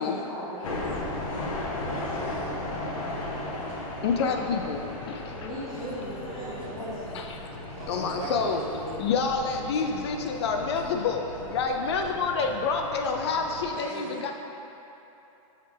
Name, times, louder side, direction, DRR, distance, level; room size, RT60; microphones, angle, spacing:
voice 1, 0.0-1.4 5.4-7.3 7.8-7.9 13.9-14.1, equal, ahead, -15 dB, 0.9 m, -38 dB
sound 1, 0.6-13.7, left 2 dB, 70° left, 1.1 m, -36 dB
voice 2, 1.9-2.5 7.7-9.0 11.8-11.9 13.7-14.3, right 3 dB, 30° right, -2 dB, 0.8 m, -39 dB
voice 3, 4.0-5.3 7.1-7.6 7.9-11.2 11.5-14.3, left 5 dB, 50° left, 4 dB, 0.4 m, -28 dB
6.4 x 3.3 x 5.0 m, 3.0 s
supercardioid pair, 165°, 18 cm